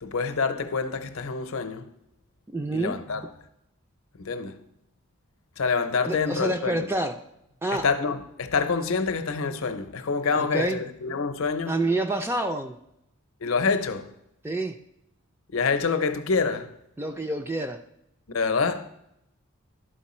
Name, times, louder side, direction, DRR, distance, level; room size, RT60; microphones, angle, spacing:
voice 1, 0.0-1.9 2.7-3.2 4.2-4.6 5.6-6.9 7.7-11.8 13.4-14.1 15.5-16.7 18.3-18.9, left 5 dB, 70° left, 0.6 m, -26 dB
voice 2, 2.5-3.0 6.1-7.2 7.6-7.9 10.4-10.8 11.7-12.8 14.4-14.8 17.0-17.8, right 2 dB, 10° right, 0.3 m, -27 dB
11.5 x 4.5 x 4.2 m
head